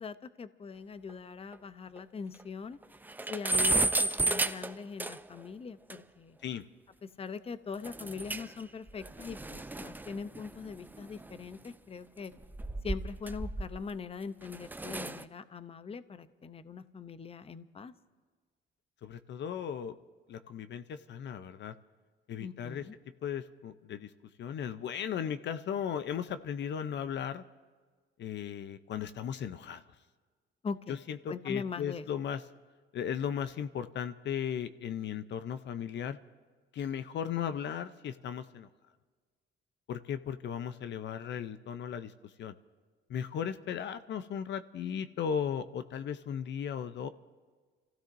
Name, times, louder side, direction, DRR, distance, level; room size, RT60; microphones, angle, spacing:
voice 1, 0.0-2.8 3.3-6.4 7.0-12.3 12.8-17.9 22.4-22.9 30.6-31.0 31.3-32.1, left 5 dB, 30° left, 13 dB, 0.6 m, -42 dB
sound 1, 1.1-1.2 1.5-1.6 2.0-2.1 2.4-2.5 2.8-5.4 5.9-6.0 7.8-8.6 8.9-11.5 12.3-14.0 14.4-15.2, right 2 dB, 10° right, 0.5 m, -33 dB
voice 2, 19.0-20.0 20.3-21.7 22.3-22.8 23.2-24.1 24.4-27.4 28.2-29.8 30.9-32.4 32.9-36.2 36.7-38.7 39.9-42.1 42.4-42.5 43.1-47.1, left 8 dB, 65° left, 12 dB, 0.6 m, -36 dB
29.5 x 15.5 x 2.6 m, 1.5 s
cardioid pair, 90°, 20 cm